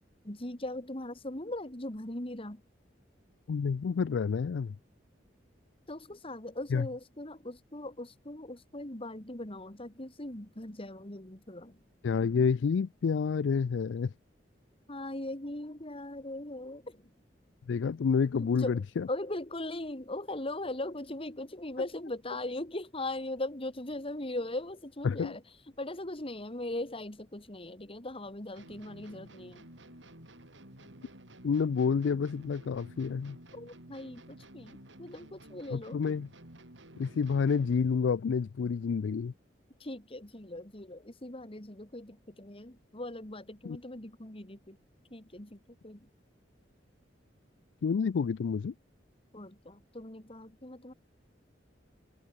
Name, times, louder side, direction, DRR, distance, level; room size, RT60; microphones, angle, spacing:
voice 1, 0.2-2.6 5.9-11.8 14.9-17.1 18.4-25.4 25.8-29.6 33.5-36.0 39.8-44.8 45.1-46.1 49.3-50.9, left 1 dB, 30° left, 2.8 m, -40 dB
voice 2, 3.5-4.8 6.7-6.9 12.0-14.1 17.7-19.1 25.0-25.3 31.4-33.4 35.7-36.3 37.0-39.3 43.7-43.8 47.8-48.7, left 5 dB, 80° left, 0.4 m, -29 dB
sound 1, 28.5-38.0, right 1 dB, 90° right, 5.6 m, -53 dB
head